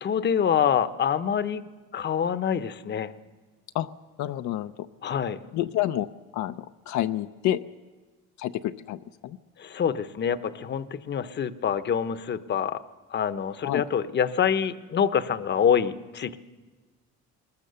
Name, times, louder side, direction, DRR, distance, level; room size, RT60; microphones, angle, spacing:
voice 1, 0.0-1.6 1.9-3.1 5.0-5.4 9.6-12.8 13.1-16.4, left 8 dB, 35° left, 13 dB, 0.9 m, -26 dB
voice 2, 4.2-4.7 5.5-6.1 6.3-6.6 6.9-7.6 8.4-9.4 13.6-13.8, left 13 dB, 70° left, 8 dB, 0.6 m, -28 dB
22.0 x 20.5 x 6.8 m, 1.3 s
cardioid pair, 125°, 29 cm